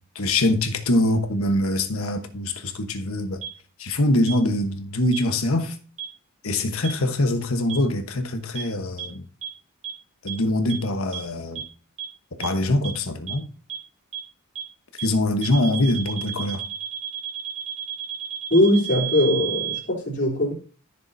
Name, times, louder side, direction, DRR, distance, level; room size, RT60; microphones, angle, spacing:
voice 1, 0.1-3.4 3.8-5.8 6.4-9.2 10.2-11.6 12.4-13.5 15.0-16.6, left 1 dB, 80° left, 1.2 m, -23 dB
sound 1, 3.4-3.5 4.3-4.4 5.1-5.2 6.0-6.1 6.8-6.9 7.7-7.8 8.6-8.7 9.0-9.1 9.4-9.5 9.8-9.9 10.3-10.4 10.7-10.8 11.1-11.2 11.6-11.7 12.0-12.1 12.4-12.5 12.8-12.9 13.3-13.4 13.7-13.8 14.1-14.2 14.6-14.7 15.0-15.1 15.4-19.8, right 12 dB, 60° right, 2.7 m, -31 dB
voice 2, 18.5-20.5, left 1 dB, 50° left, 3.4 m, -20 dB
13.5 x 6.8 x 2.7 m
head